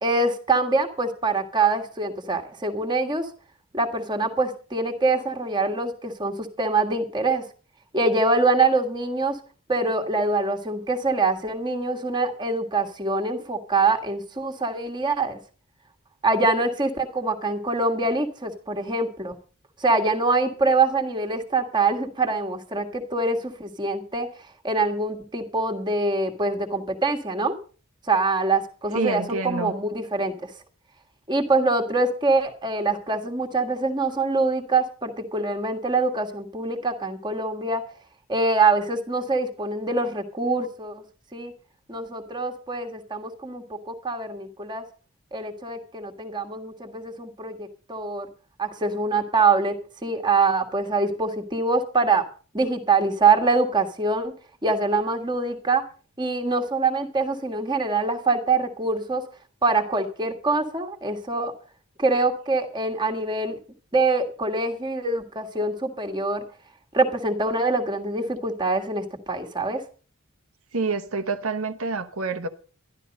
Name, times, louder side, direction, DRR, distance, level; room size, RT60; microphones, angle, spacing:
voice 1, 0.0-3.3 3.7-7.4 7.9-9.4 9.7-15.4 16.2-19.4 19.8-24.3 24.6-27.6 28.1-30.5 31.3-37.8 38.3-41.0 41.3-41.5 41.9-44.8 45.3-48.3 48.6-49.8 50.0-52.2 52.5-54.3 54.6-55.8 56.2-59.2 59.6-61.5 62.0-63.6 63.9-66.4 66.9-69.8, right 3 dB, 20° right, 1.7 m, -24 dB
voice 2, 28.9-29.7 70.7-72.5, right 4 dB, 75° right, 1.0 m, -27 dB
12.0 x 12.0 x 5.3 m
head